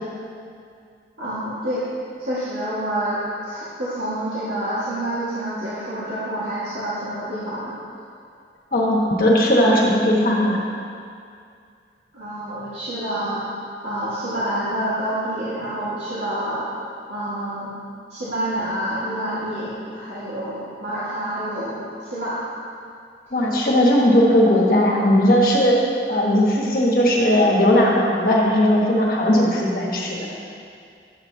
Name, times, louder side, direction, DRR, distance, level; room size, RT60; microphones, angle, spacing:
voice 1, 1.2-1.8 2.2-7.7 12.1-13.4 13.8-16.7 17.1-17.7 18.1-22.4, right 1 dB, 90° right, -12 dB, 1.8 m, -28 dB
voice 2, 8.7-10.6 23.3-25.8 26.1-30.3, left 1 dB, 50° left, -3 dB, 1.5 m, -17 dB
11.0 x 8.1 x 2.8 m, 2.3 s
head